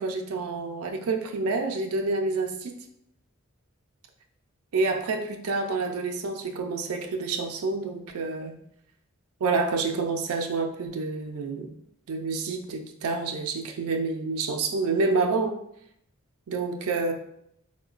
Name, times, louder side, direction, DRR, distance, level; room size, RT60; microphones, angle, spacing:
voice 1, 0.0-2.7 4.7-8.5 9.4-11.7 12.1-15.6 16.5-17.1, right 3 dB, 90° right, 0.4 m, -28 dB
3.7 x 2.1 x 2.4 m
head